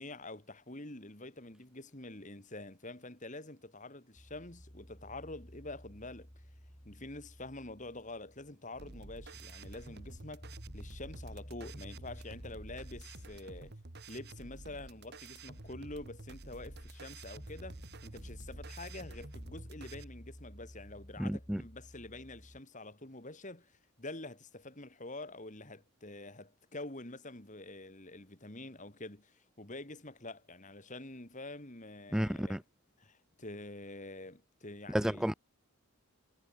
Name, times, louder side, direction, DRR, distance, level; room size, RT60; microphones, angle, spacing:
voice 1, 0.0-6.3 6.8-10.5 10.7-13.7 14.1-32.6 33.0-35.3, left 2 dB, 35° left, 2.9 m, -47 dB
sound 1, 4.2-22.6, equal, 15° left, 6.1 m, -52 dB
sound 2, 8.8-20.0, right 2 dB, 50° right, 1.6 m, -50 dB
voice 2, 21.2-21.6 32.1-32.6 34.9-35.3, equal, ahead, 0.3 m, -31 dB
head